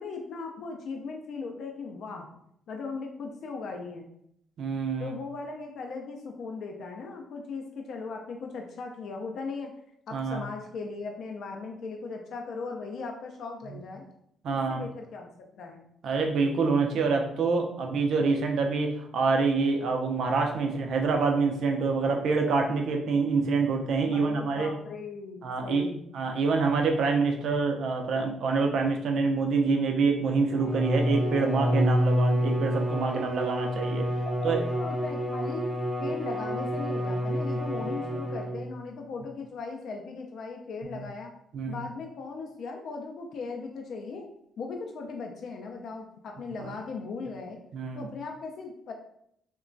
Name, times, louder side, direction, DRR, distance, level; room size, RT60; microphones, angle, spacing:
voice 1, 0.0-2.3 2.7-4.1 5.0-9.7 10.1-14.0 14.5-15.3 15.6-15.8 24.1-26.0 34.2-35.7 36.0-41.3 41.7-44.3 44.6-47.6 47.9-48.9, left 4 dB, 65° left, 2 dB, 0.3 m, -38 dB
voice 2, 4.6-5.1 10.1-10.4 14.4-14.8 16.0-24.7 25.4-25.8 26.1-34.1 34.4-34.6 41.5-41.8 46.6-46.7 47.7-48.1, right 4 dB, 70° right, 3 dB, 0.4 m, -26 dB
Bowed string instrument, 30.5-38.8, equal, 10° right, 0.5 m, -28 dB
2.9 x 2.2 x 2.5 m, 0.73 s
cardioid pair, 90°, 0 cm